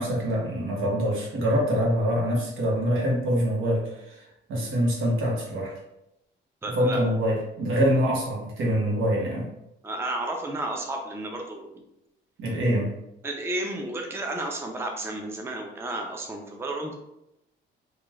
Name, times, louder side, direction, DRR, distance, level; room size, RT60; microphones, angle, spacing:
voice 1, 0.0-4.2 4.5-5.7 6.8-9.5 12.4-12.9, equal, 80° right, -3 dB, 0.9 m, -25 dB
voice 2, 6.6-7.0 9.8-11.8 13.2-16.9, right 2 dB, 10° right, 2 dB, 0.4 m, -32 dB
3.0 x 2.2 x 2.3 m, 0.85 s
cardioid pair, 90°, 20 cm